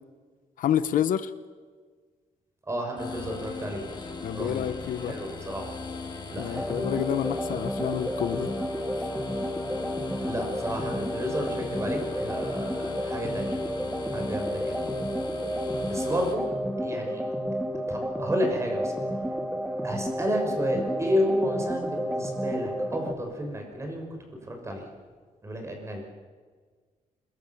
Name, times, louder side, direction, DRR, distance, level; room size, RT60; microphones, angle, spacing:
voice 1, 0.6-1.3 4.2-5.2 6.4-8.5, left 10 dB, 85° left, 13 dB, 1.0 m, -28 dB
voice 2, 2.7-3.8 4.3-4.6 5.0-5.8 6.3-6.7 10.2-13.5 14.1-14.8 15.9-16.4 16.8-17.3 17.9-18.9 19.8-24.1 24.4-24.8 25.4-26.0, equal, 20° right, 2 dB, 6.1 m, -31 dB
sound 1, 3.0-16.3, left 4 dB, 35° left, 5.2 m, -39 dB
sound 2, 6.5-23.1, equal, 5° right, 2.2 m, -31 dB
26.5 x 21.0 x 7.3 m, 1.6 s
cardioid pair, 135°, 14 cm